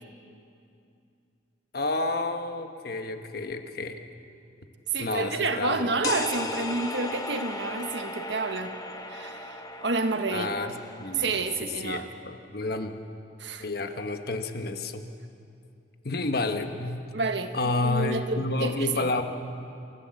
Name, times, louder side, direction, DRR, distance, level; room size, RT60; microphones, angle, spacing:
voice 1, 1.7-4.0 5.0-5.9 6.4-6.5 10.3-10.7 11.0-12.9 13.6-15.0 16.0-17.0 17.5-19.2, left 2 dB, 55° left, 6 dB, 1.3 m, -30 dB
voice 2, 4.9-8.7 9.1-10.5 11.1-12.0 13.4-13.7 17.1-17.5 17.8-19.1, right 3 dB, 70° right, 7 dB, 1.4 m, -29 dB
sound 1, 6.0-11.6, left 2 dB, 20° left, 1.3 m, -36 dB
27.5 x 14.5 x 7.7 m, 2.6 s
head